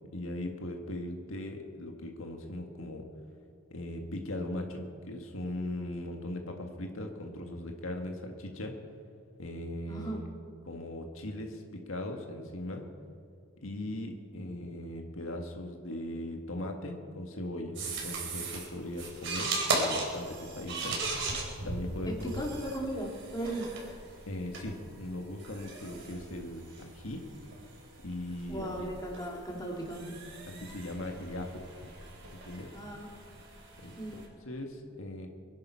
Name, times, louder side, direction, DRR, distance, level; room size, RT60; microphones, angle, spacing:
voice 1, 0.1-3.1 3.7-8.8 9.4-10.3 10.6-12.9 13.6-21.0 21.6-22.5 24.3-27.3 28.0-28.7 30.6-31.7 32.3-32.7 33.8-35.3, left 1 dB, 85° left, 3 dB, 1.7 m, -39 dB
voice 2, 9.9-10.2 22.0-23.7 28.5-30.2 32.7-33.1 34.0-34.3, right 1 dB, 20° left, -2 dB, 2.8 m, -37 dB
sound 1, 17.7-34.3, right 3 dB, 60° right, 3.8 m, -38 dB
24.0 x 10.5 x 5.7 m, 2.3 s
head